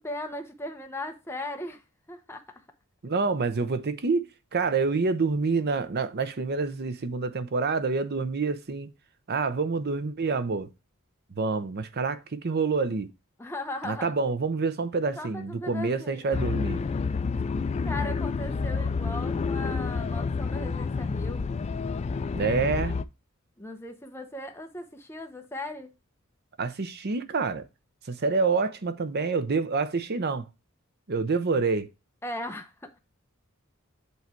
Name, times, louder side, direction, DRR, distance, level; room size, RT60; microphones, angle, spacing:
voice 1, 0.0-1.8 2.1-2.6 13.4-14.1 15.1-16.4 17.8-21.5 23.6-25.9 32.2-33.0, left 1 dB, 10° left, 0.8 m, -38 dB
voice 2, 3.0-4.3 4.5-8.9 9.3-10.7 11.4-13.1 13.8-16.8 22.3-22.9 26.6-27.7 28.1-30.5 31.1-31.9, right 4 dB, 50° right, 0.7 m, -27 dB
sound 1, 16.3-23.0, left 4 dB, 30° left, 0.3 m, -29 dB
8.3 x 3.2 x 4.5 m
head